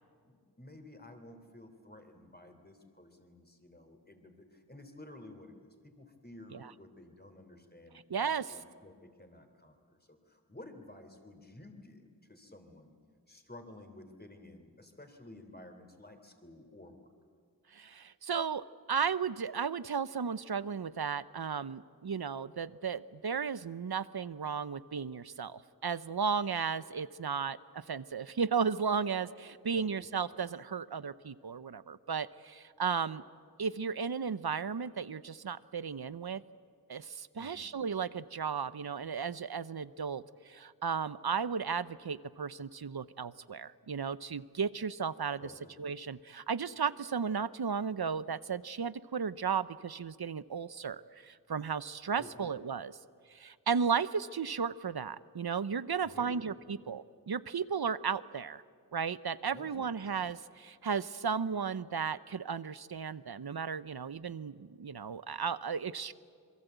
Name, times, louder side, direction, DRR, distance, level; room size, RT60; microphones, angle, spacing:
voice 1, 0.2-13.0 13.3-17.1 29.7-30.1 37.4-37.7 45.4-45.7 52.2-52.5 56.0-56.8 59.5-60.1, left 1 dB, 25° left, 6 dB, 3.3 m, -53 dB
voice 2, 8.1-8.5 17.7-33.2 33.6-36.4 36.9-45.5 45.8-53.0 53.3-58.6 58.9-66.1, right 6 dB, 75° right, 16 dB, 0.7 m, -35 dB
27.0 x 22.5 x 8.2 m, 2.1 s
wide cardioid pair, 40°, 38 cm